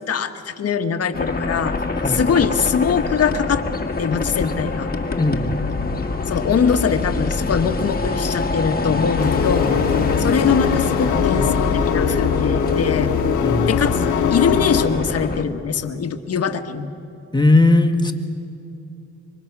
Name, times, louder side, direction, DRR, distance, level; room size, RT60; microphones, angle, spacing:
voice 1, 0.0-1.8 2.1-3.6 4.0-4.9 6.3-9.7 10.2-13.1 13.7-16.9, left 6 dB, 55° left, 7 dB, 1.6 m, -22 dB
sound 1, 1.1-15.4, left 3 dB, 30° left, 1.8 m, -25 dB
voice 2, 2.0-2.4 5.2-5.5 13.4-13.7 17.3-18.1, left 2 dB, 15° left, 4 dB, 1.9 m, -17 dB
sound 2, 9.2-14.9, left 8 dB, 80° left, 1.6 m, -21 dB
27.0 x 24.0 x 6.1 m, 2.7 s
cardioid pair, 90°, 30 cm